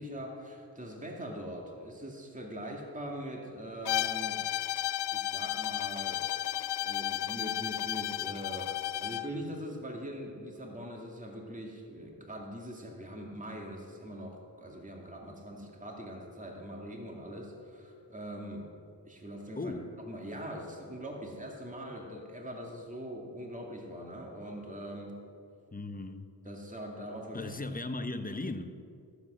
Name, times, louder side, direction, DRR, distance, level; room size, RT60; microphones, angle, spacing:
voice 1, 0.0-4.4 5.1-6.2 6.8-18.7 19.0-19.7 20.1-25.1 26.4-27.5, equal, 20° right, 2.4 m, -42 dB
Bowed string instrument, 3.8-9.3, left 13 dB, 70° left, 0.5 m, -33 dB
voice 2, 19.6-19.9 25.7-26.2 27.3-28.9, left 2 dB, 20° left, 1.0 m, -37 dB
14.5 x 8.2 x 6.3 m
cardioid pair, 55°, 42 cm